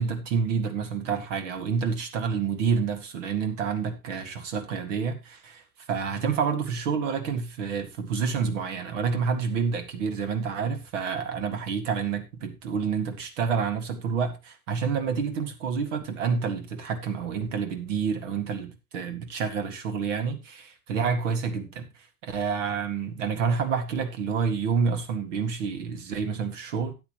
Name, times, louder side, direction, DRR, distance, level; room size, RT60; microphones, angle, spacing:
voice 1, 0.0-5.6 5.9-21.9 22.2-26.9, right 6 dB, 55° right, 2.1 m, -28 dB
13.0 x 8.9 x 3.1 m
figure-of-eight pair, 95°, 44 cm